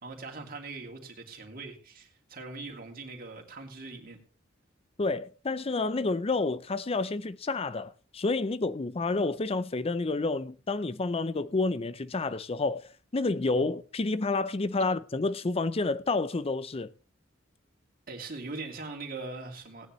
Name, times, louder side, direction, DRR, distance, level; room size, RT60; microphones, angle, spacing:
voice 1, 0.0-4.2 18.1-19.9, right 3 dB, 50° right, 2.7 m, -41 dB
voice 2, 5.0-16.9, left 3 dB, 30° left, 0.5 m, -29 dB
18.0 x 9.9 x 3.1 m
head